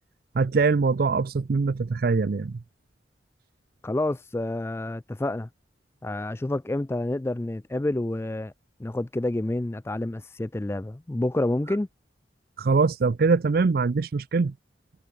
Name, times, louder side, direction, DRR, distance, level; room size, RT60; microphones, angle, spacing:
voice 1, 0.3-2.6 12.6-14.5, right 4 dB, 55° right, 0.4 m, -23 dB
voice 2, 3.8-5.5 6.0-8.5 8.8-11.9, left 1 dB, 15° left, 0.3 m, -28 dB
head